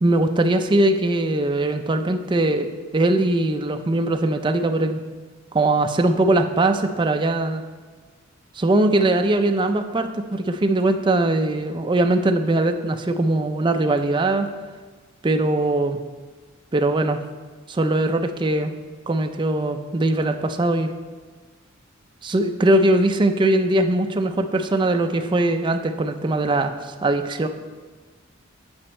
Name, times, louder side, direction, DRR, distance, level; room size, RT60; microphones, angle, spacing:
voice 1, 0.0-5.0 5.5-7.6 8.6-14.5 15.2-16.0 16.7-17.2 17.7-18.7 19.1-20.9 22.2-27.5, right 2 dB, 20° right, 7 dB, 0.4 m, -21 dB
8.8 x 5.0 x 4.3 m, 1.4 s
head